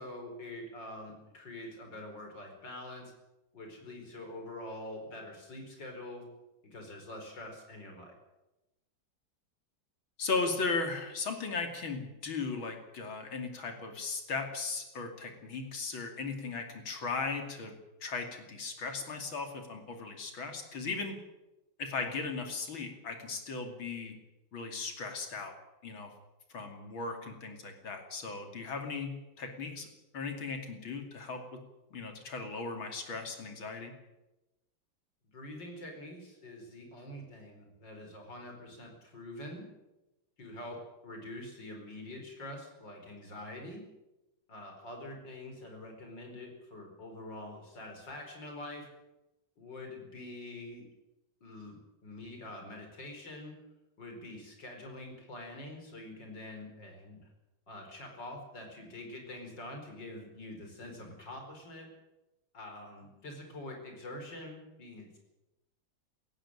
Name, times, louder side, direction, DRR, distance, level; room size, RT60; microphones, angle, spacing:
voice 1, 0.0-3.1 3.5-6.3 6.6-8.1 35.3-39.7 40.4-43.9 44.5-48.9 49.6-50.9 51.4-51.8 52.0-53.5 54.0-57.2 57.7-61.9 62.5-65.2, left 1 dB, 60° left, 3 dB, 5.4 m, -45 dB
voice 2, 10.2-17.7 18.0-21.2 21.8-24.2 24.5-25.5 25.8-26.1 26.5-29.9 30.1-31.6 31.9-33.9, left 4 dB, 80° left, 5 dB, 3.5 m, -37 dB
18.0 x 15.0 x 10.0 m, 0.99 s
omnidirectional pair, 2.2 m